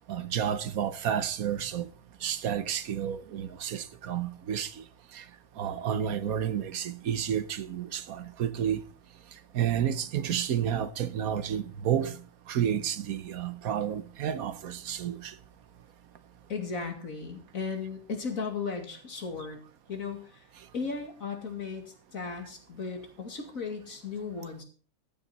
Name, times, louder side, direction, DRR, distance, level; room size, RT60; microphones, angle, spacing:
voice 1, 0.1-1.9 2.2-4.8 5.1-5.2 5.6-8.8 9.5-12.2 12.5-15.3, right 9 dB, 75° right, 1.3 m, -30 dB
voice 2, 16.5-19.6 19.9-20.4 20.7-24.6, left 5 dB, 65° left, 2.7 m, -36 dB
14.5 x 9.3 x 4.2 m
omnidirectional pair, 1.6 m